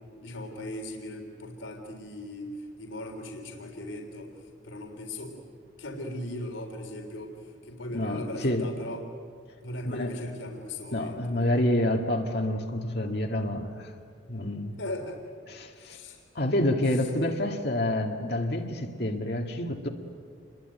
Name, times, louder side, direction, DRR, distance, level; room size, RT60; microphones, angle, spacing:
voice 1, 0.1-4.3 4.6-5.4 5.8-7.3 7.6-9.0 9.6-11.6 14.8-15.2 15.7-16.2, left 1 dB, 75° left, 2 dB, 3.7 m, -38 dB
voice 2, 7.9-8.7 9.8-10.2 10.9-13.9 14.3-14.7 15.5-16.0 16.4-19.9, left 1 dB, 55° left, 2 dB, 1.9 m, -28 dB
28.0 x 22.0 x 9.2 m, 2.1 s
head